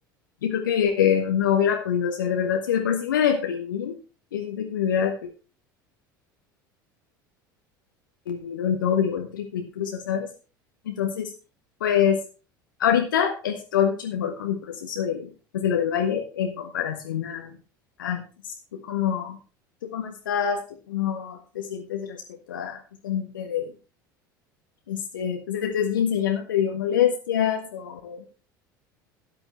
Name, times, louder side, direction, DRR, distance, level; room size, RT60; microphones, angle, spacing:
voice 1, 0.4-4.0 4.3-5.1 8.3-10.3 10.8-11.3 11.8-12.2 12.8-17.5 18.0-18.2 18.7-19.4 19.8-20.6 20.9-22.2 22.5-23.7 24.9-28.2, left 8 dB, 70° left, 3 dB, 1.5 m, -25 dB
13.0 x 9.7 x 3.3 m, 0.34 s
figure-of-eight pair, 70°, 11 cm